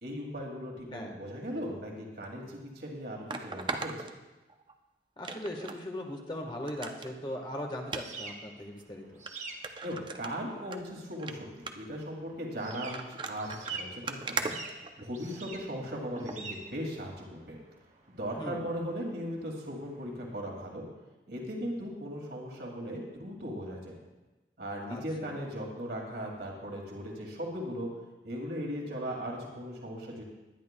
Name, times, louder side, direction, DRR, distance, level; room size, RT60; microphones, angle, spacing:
voice 1, 0.0-4.1 9.8-17.6 18.2-20.8 21.3-24.0 24.6-27.9 28.2-30.2, equal, 65° right, -1 dB, 2.4 m, -38 dB
voice 2, 0.9-1.3 5.2-9.2 18.4-18.7 24.9-25.4, left 1 dB, 25° left, 2 dB, 1.3 m, -39 dB
sound 1, 2.2-2.3 3.3-4.7 5.2-5.8 6.2-6.3 6.7-7.1 7.8-8.0 8.8-8.9 9.3-9.4 9.6-10.8 11.1-11.3 11.7-12.0 12.7-15.4 16.2-16.4 16.9-17.0, right 4 dB, 25° right, 0.5 m, -38 dB
sound 2, 7.3-20.4, right 4 dB, 40° right, 1.1 m, -47 dB
20.5 x 10.5 x 2.2 m, 1.1 s
head